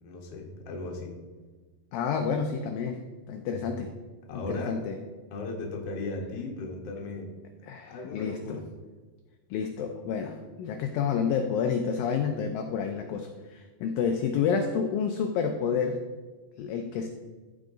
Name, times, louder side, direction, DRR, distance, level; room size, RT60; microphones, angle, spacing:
voice 1, 0.0-1.2 3.5-3.6 4.3-4.8 5.3-7.3 7.9-8.6, left 2 dB, 55° left, 0 dB, 1.8 m, -36 dB
voice 2, 1.9-3.0 3.3-3.9 4.3-5.0 7.6-8.6 9.5-16.0 16.6-17.1, left 6 dB, 80° left, 5 dB, 2.1 m, -29 dB
14.5 x 5.0 x 3.8 m, 1.3 s
omnidirectional pair, 4.7 m